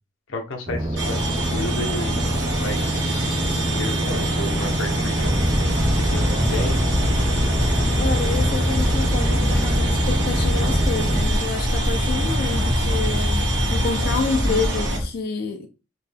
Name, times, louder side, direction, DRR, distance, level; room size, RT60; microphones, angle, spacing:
voice 1, 0.3-2.2 2.6-5.5 6.1-6.8, left 1 dB, 90° left, 0.7 m, -32 dB
sound 1, 0.7-11.2, right 1 dB, 35° right, 0.8 m, -27 dB
sound 2, 1.0-15.0, right 1 dB, 70° right, 1.1 m, -27 dB
sound 3, 5.1-15.1, left 1 dB, 5° left, 1.1 m, -23 dB
voice 2, 8.0-15.7, left 4 dB, 50° left, 0.3 m, -28 dB
2.9 x 2.2 x 3.2 m
head